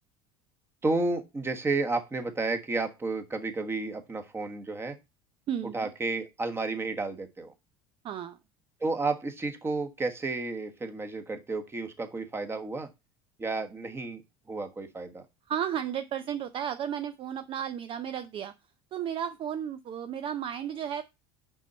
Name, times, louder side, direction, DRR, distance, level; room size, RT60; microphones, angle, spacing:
voice 1, 0.8-5.0 5.7-7.5 8.8-12.9 13.4-14.2 14.5-15.2, right 3 dB, 20° right, 7 dB, 1.4 m, -31 dB
voice 2, 5.5-5.9 8.0-8.4 15.5-18.5 18.9-21.0, right 9 dB, 40° right, 10 dB, 0.5 m, -33 dB
6.2 x 5.4 x 4.2 m, 0.24 s
supercardioid pair, 110°, 13 cm